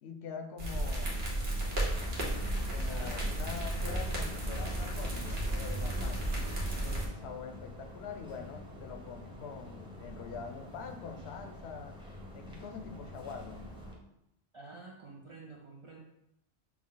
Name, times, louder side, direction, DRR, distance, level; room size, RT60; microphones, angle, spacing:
voice 1, 0.0-1.3 2.7-6.4 6.7-12.0 12.3-13.7, left 6 dB, 85° left, 6 dB, 0.8 m, -44 dB
sound 1, 0.6-7.1, right 1 dB, 75° right, 1.2 m, -33 dB
sound 2, 1.9-13.9, left 1 dB, 5° right, 0.6 m, -48 dB
voice 2, 2.9-3.2 14.5-16.0, right 3 dB, 50° right, -1 dB, 0.4 m, -49 dB
5.9 x 2.0 x 3.8 m, 0.82 s
omnidirectional pair, 1.1 m